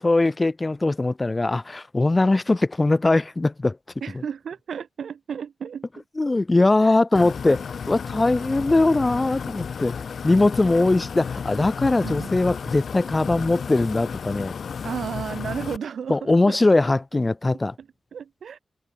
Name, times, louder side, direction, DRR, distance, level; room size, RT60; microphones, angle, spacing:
voice 1, 0.0-3.8 6.2-14.5 16.1-17.7, left 2 dB, 20° left, 0.7 m, -21 dB
voice 2, 4.0-6.0 6.8-7.0 12.0-12.3 14.8-16.6 17.8-18.6, right 7 dB, 85° right, 1.2 m, -33 dB
sound 1, 7.1-15.8, left 6 dB, 65° left, 0.7 m, -33 dB
wide cardioid pair, 155°, 0 cm